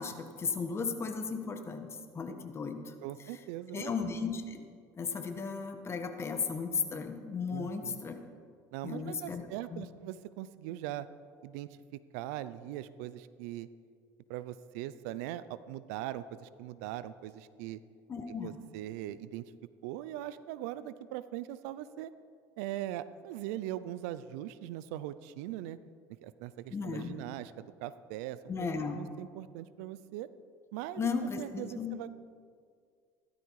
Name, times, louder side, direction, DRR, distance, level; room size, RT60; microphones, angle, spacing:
voice 1, 0.0-2.9 3.7-4.6 5.0-8.2 8.8-9.4 9.7-9.9 18.1-18.6 26.7-27.2 28.5-29.0 31.0-32.0, left 5 dB, 30° left, 6 dB, 1.7 m, -35 dB
voice 2, 3.0-3.9 7.5-8.0 8.7-11.1 11.4-13.7 14.3-17.8 18.4-19.4 19.8-22.1 22.6-25.8 26.2-30.3 30.7-31.1 31.4-32.1, right 13 dB, 80° right, 15 dB, 0.6 m, -41 dB
16.0 x 12.5 x 4.9 m, 2.1 s
supercardioid pair, 95°, 8 cm